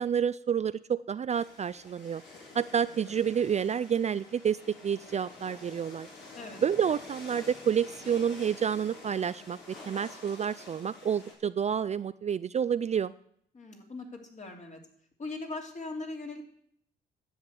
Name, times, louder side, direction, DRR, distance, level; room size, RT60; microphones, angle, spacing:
voice 1, 0.0-2.2 2.5-4.6 4.8-6.1 6.6-9.6 9.9-13.1, right 8 dB, 35° right, 15 dB, 0.4 m, -29 dB
sound 1, 1.3-11.3, left 2 dB, 65° left, 4.5 m, -49 dB
voice 2, 13.5-14.8 15.2-16.4, left 3 dB, 35° left, 2 dB, 3.1 m, -40 dB
10.5 x 8.0 x 8.2 m, 0.68 s
cardioid pair, 90°, 20 cm